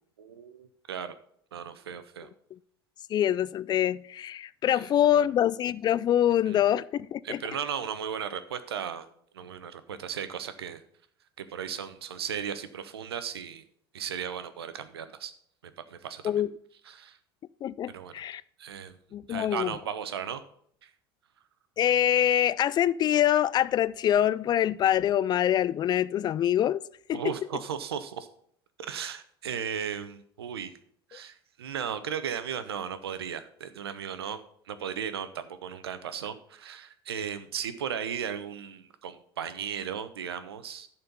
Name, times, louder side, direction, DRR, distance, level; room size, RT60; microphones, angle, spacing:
voice 1, 0.2-1.1 1.5-2.3 4.7-4.8 5.1-5.2 6.5-6.6 7.2-9.1 9.3-10.8 11.4-13.6 13.9-15.3 15.9-16.2 16.9-17.2 17.9-18.1 18.6-18.9 19.3-20.4 20.8-20.9 27.1-28.3 28.9-30.7 31.1-34.4 34.7-40.9, right 8 dB, 80° right, 0.9 m, -36 dB
voice 2, 3.1-7.4 16.2-16.5 17.6-18.4 19.1-19.8 21.8-26.8 27.1-27.3, left 11 dB, 35° left, 0.4 m, -25 dB
11.5 x 4.4 x 6.8 m
hypercardioid pair, 80°, 13 cm